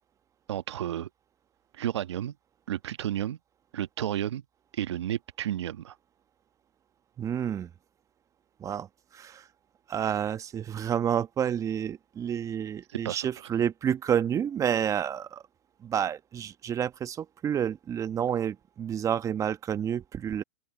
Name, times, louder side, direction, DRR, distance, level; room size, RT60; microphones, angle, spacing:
voice 1, 0.5-1.1 1.8-2.3 2.7-3.4 3.7-4.4 4.7-5.9 13.0-13.2, right 11 dB, 75° right, 1.4 m, -31 dB
voice 2, 7.2-7.7 8.6-9.5 9.9-15.4 15.8-20.4, right 9 dB, 20° right, 1.2 m, -29 dB
open air
hypercardioid pair, 120°, 15 cm